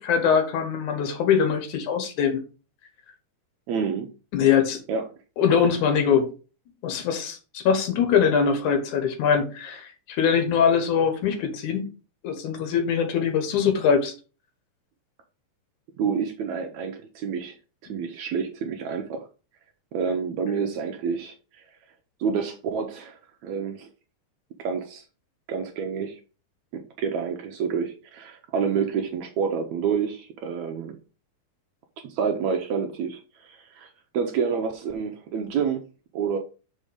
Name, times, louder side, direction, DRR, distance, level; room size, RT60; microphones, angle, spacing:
voice 1, 0.0-2.4 4.3-4.8 5.4-6.3 6.8-11.9 12.2-14.1, left 7 dB, 70° left, 2.4 m, -22 dB
voice 2, 3.7-4.1 4.9-5.1 16.0-17.6 17.8-19.3 19.9-21.6 22.2-23.9 24.6-25.0 25.5-26.2 26.7-31.0 32.0-33.9 34.1-35.8 36.1-36.4, right 6 dB, 75° right, 1.8 m, -28 dB
5.5 x 5.4 x 5.0 m
omnidirectional pair, 3.8 m